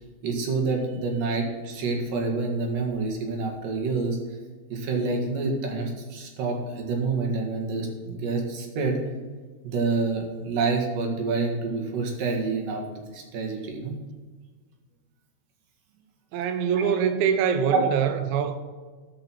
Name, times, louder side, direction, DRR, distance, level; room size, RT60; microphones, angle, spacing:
voice 1, 0.2-4.2 4.7-9.0 9.6-13.9 16.6-16.9 17.7-17.9, right 3 dB, 65° right, 3.3 m, -27 dB
voice 2, 16.3-18.6, right 7 dB, 90° right, 1.7 m, -24 dB
13.5 x 5.5 x 5.9 m
omnidirectional pair, 4.4 m